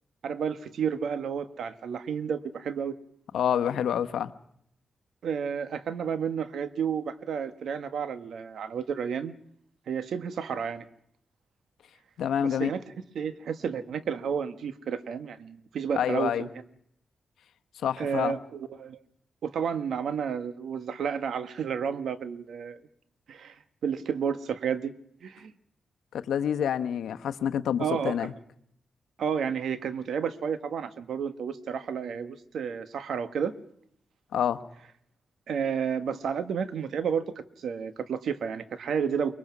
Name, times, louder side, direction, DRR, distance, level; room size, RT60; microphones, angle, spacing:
voice 1, 0.2-3.0 5.2-9.3 9.9-10.8 12.4-12.8 13.1-16.5 18.0-19.0 19.4-22.8 23.3-24.9 25.2-25.5 27.8-28.3 29.2-33.5 35.5-39.4, right 7 dB, 80° right, 12 dB, 1.3 m, -31 dB
voice 2, 3.3-4.3 12.2-12.7 16.0-16.5 17.8-18.4 26.1-28.3 34.3-34.6, left 9 dB, 90° left, 10 dB, 1.0 m, -27 dB
24.5 x 21.0 x 6.1 m, 0.70 s
cardioid pair, 70°, 0 cm